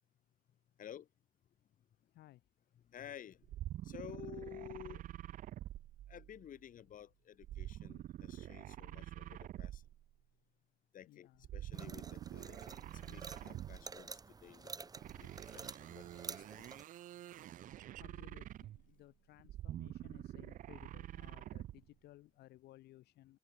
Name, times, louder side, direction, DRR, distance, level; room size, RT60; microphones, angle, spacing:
voice 1, 1.7-2.5 11.0-11.5 18.0-23.4, left 16 dB, 75° left, 2.6 m, -60 dB
voice 2, 2.9-3.5 3.8-5.0 6.1-9.8 10.9-14.1 14.4-14.7 15.2-15.3 15.5-16.7, left 10 dB, 55° left, 3.0 m, -52 dB
sound 1, 3.4-6.5 7.4-10.1 11.4-14.0 15.0-18.9 19.4-21.9, right 13 dB, 50° right, 0.4 m, -47 dB
sound 2, 11.7-16.8, right 4 dB, 20° right, 1.2 m, -50 dB
cardioid pair, 110°, 17 cm